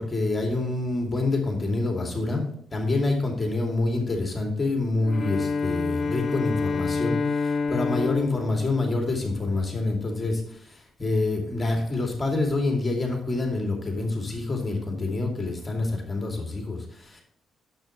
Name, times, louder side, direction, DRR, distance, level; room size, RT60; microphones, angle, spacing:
voice 1, 0.0-17.2, left 2 dB, 20° left, 1 dB, 2.4 m, -27 dB
Bowed string instrument, 5.0-9.6, left 4 dB, 45° left, 0.7 m, -28 dB
8.7 x 7.5 x 3.0 m, 0.66 s
cardioid pair, 90°, 0 cm